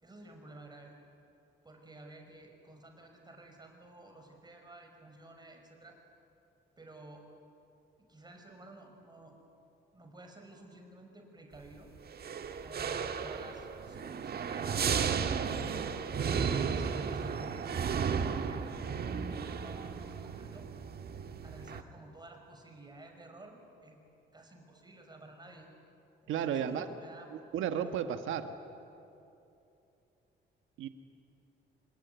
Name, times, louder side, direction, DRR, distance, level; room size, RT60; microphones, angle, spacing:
voice 1, 0.0-0.9 1.6-6.0 6.8-7.3 8.0-9.4 9.9-11.9 12.6-15.4 16.5-18.7 19.3-20.7 21.4-24.0 24.3-25.7 26.2-27.3 27.8-28.0, right 2 dB, 20° right, 3 dB, 5.3 m, -52 dB
sound 1, 12.1-21.8, right 6 dB, 55° right, 1.5 m, -34 dB
voice 2, 26.3-26.9 27.3-28.6 30.8-30.9, right 8 dB, 85° right, 9 dB, 1.4 m, -33 dB
26.0 x 21.5 x 9.4 m, 2.8 s
cardioid pair, 90°, 20 cm